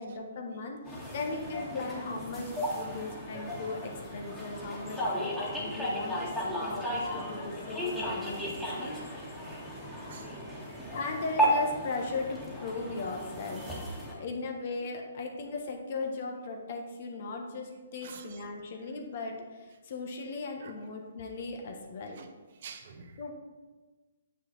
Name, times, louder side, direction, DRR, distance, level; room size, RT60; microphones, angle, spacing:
voice 1, 0.0-9.4 10.9-13.6 14.1-22.2 23.2-23.3, left 3 dB, 50° left, 2 dB, 1.3 m, -38 dB
sound 1, 0.9-14.1, equal, 5° left, 1.8 m, -34 dB
voice 2, 10.0-10.8 18.0-18.4 20.6-20.7 22.1-22.3 22.5-23.2, right 6 dB, 50° right, 5 dB, 0.9 m, -49 dB
7.7 x 6.0 x 4.0 m, 1.3 s
figure-of-eight pair, 130°, 0 cm